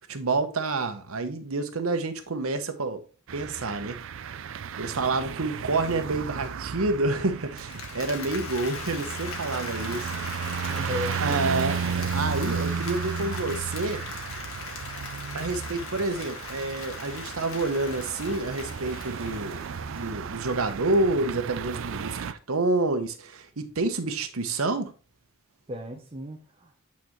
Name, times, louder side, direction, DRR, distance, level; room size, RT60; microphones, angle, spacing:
voice 1, 0.1-3.0 3.3-4.0 4.8-10.1 11.2-11.8 12.1-14.0 15.3-19.6 20.0-24.9, right 3 dB, 85° right, 1.0 m, -28 dB
sound 1, 3.3-22.3, right 6 dB, 65° right, 0.4 m, -34 dB
Applause, 7.4-20.4, left 4 dB, 90° left, 1.6 m, -40 dB
voice 2, 10.7-11.7 25.7-26.9, left 1 dB, 25° right, 0.8 m, -36 dB
8.6 x 4.2 x 3.1 m
head